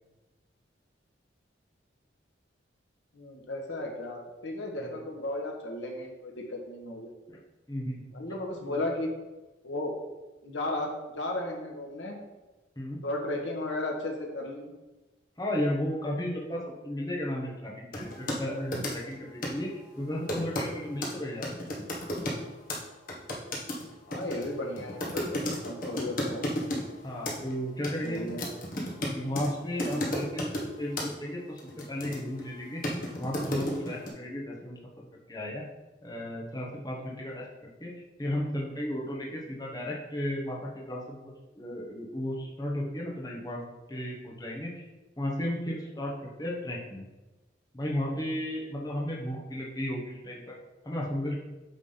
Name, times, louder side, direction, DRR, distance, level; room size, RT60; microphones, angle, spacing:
voice 1, 3.1-7.1 8.1-9.1 9.6-9.9 10.4-12.2 13.0-14.7 24.1-26.5 28.0-28.4, left 1 dB, 80° left, 1 dB, 1.4 m, -35 dB
voice 2, 7.7-8.2 8.7-8.8 12.8-13.0 15.4-19.7 20.0-21.5 27.0-28.3 29.0-32.8 33.1-35.6 36.0-37.4 37.8-43.6 43.9-44.7 45.2-47.0 47.7-50.5 50.8-51.3, left 1 dB, 20° left, -3 dB, 1.2 m, -34 dB
sound 1, 17.9-18.4 18.7-19.1 19.4-19.6 20.3-20.7 21.0-21.1 21.4-22.4 22.7-22.8 23.1-26.8 27.3-27.5 27.8-29.5 29.8-30.7 31.0-31.1 31.6-32.4 32.8-34.1, left 1 dB, 50° left, 1.5 m, -33 dB
8.5 x 3.7 x 5.7 m, 1.1 s
head